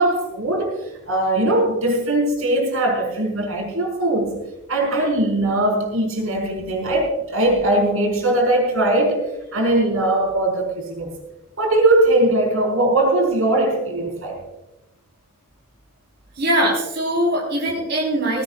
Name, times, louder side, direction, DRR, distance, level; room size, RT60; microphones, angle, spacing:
voice 1, 0.0-4.3 4.7-11.1 11.6-14.4, right 1 dB, 65° right, 0 dB, 5.1 m, -20 dB
voice 2, 16.4-18.4, right 1 dB, 50° right, -3 dB, 4.5 m, -21 dB
19.5 x 17.5 x 2.5 m, 0.95 s
head